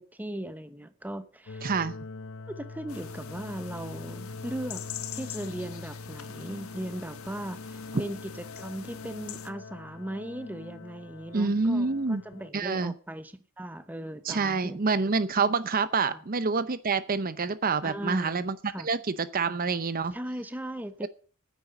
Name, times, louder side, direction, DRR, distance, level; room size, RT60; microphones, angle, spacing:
voice 1, 0.0-1.7 2.5-4.8 5.1-14.8 16.1-16.2 17.8-18.9 20.1-21.1, right 1 dB, 10° right, 0.9 m, -38 dB
sound 1, 1.4-12.5, left 3 dB, 60° left, 0.8 m, -43 dB
voice 2, 1.6-2.0 11.3-12.2 12.5-12.9 14.2-18.6 18.8-20.2 21.0-21.1, right 4 dB, 40° right, 0.7 m, -27 dB
sound 2, 2.9-9.5, left 8 dB, 75° left, 1.3 m, -44 dB
9.9 x 8.9 x 8.0 m
head